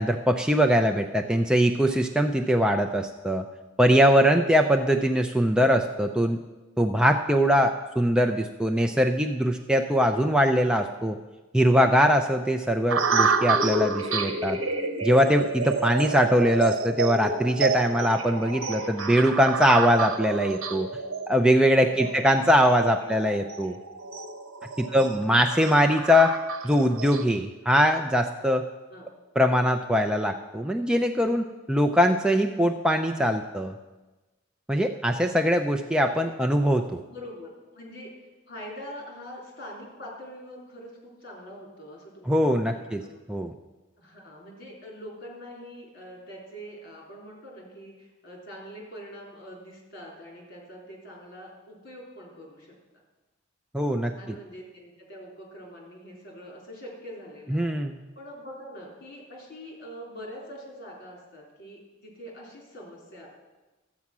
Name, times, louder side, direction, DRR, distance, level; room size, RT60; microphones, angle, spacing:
voice 1, 0.0-3.4 3.8-6.4 6.8-11.2 11.5-14.6 15.0-20.9 21.3-23.8 24.8-26.4 26.6-28.7 29.4-33.7 34.7-37.0 42.3-43.0 43.3-43.5 53.7-54.1 57.5-58.0, equal, 5° right, 4 dB, 0.4 m, -22 dB
voice 2, 0.8-1.2 21.9-22.4 22.9-23.2 24.8-25.4 28.9-29.1 36.4-36.6 37.1-43.2 44.0-52.8 53.8-57.8 58.2-63.3, equal, 50° left, -2 dB, 3.7 m, -44 dB
sound 1, 12.9-27.2, right 4 dB, 90° right, 1.0 m, -29 dB
12.5 x 8.4 x 6.0 m, 1.2 s
head